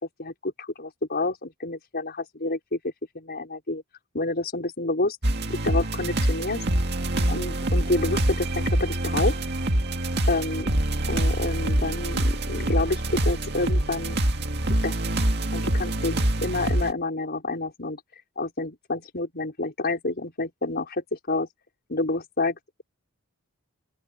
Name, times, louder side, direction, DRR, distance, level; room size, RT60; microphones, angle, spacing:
voice 1, 0.2-3.8 4.1-5.2 5.5-6.6 7.3-9.4 10.3-10.8 11.1-14.2 14.7-14.9 15.5-16.2 16.4-18.0 18.4-21.5 21.9-22.8, left 2 dB, 45° left, 5.4 m, -29 dB
sound 1, 5.2-16.9, right 1 dB, 50° right, 2.0 m, -25 dB
open air
head